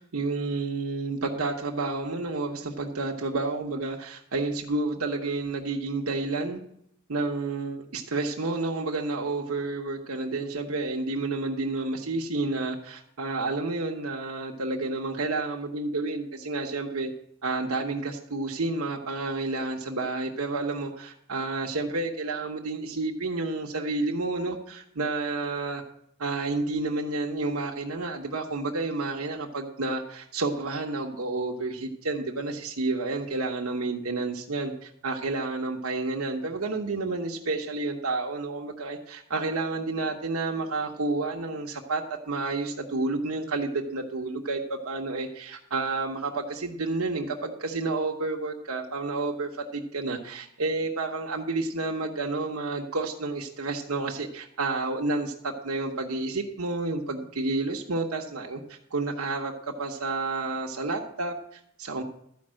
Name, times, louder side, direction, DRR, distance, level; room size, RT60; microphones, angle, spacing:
voice 1, 0.0-6.6 7.1-17.1 17.4-25.8 26.2-62.0, right 3 dB, 80° right, 0 dB, 1.0 m, -30 dB
12.5 x 5.3 x 7.5 m, 0.72 s
head